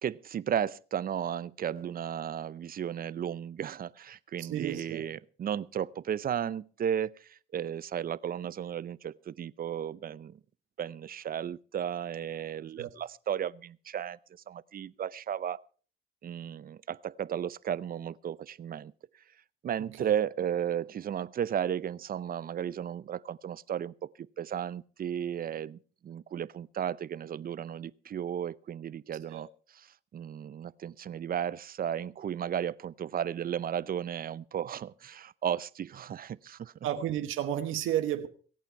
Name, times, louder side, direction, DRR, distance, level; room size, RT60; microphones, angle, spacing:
voice 1, 0.0-10.4 10.8-15.6 16.2-18.9 19.6-29.5 29.7-36.7, right 9 dB, 45° right, 0.6 m, -34 dB
voice 2, 4.4-5.0 12.8-12.9 20.0-20.1 29.3-29.4 36.8-38.3, right 11 dB, 85° right, 1.2 m, -32 dB
23.0 x 8.8 x 4.5 m
cardioid pair, 90°, 20 cm